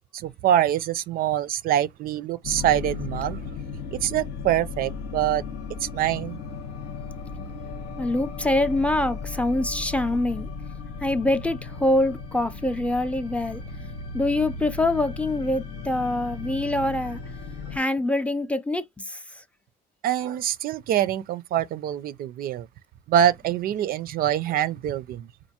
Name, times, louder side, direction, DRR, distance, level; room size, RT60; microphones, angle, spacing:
voice 1, 0.1-3.4 4.0-5.4 5.8-6.4 20.0-22.7 23.1-25.3, right 11 dB, 60° right, 0.4 m, -24 dB
sound 1, 2.4-17.8, left 4 dB, 90° left, 1.1 m, -36 dB
voice 2, 8.0-10.5 11.0-13.6 14.1-17.2 17.7-19.4, left 1 dB, 5° left, 0.5 m, -25 dB
4.3 x 2.6 x 2.8 m
cardioid pair, 110°, 17 cm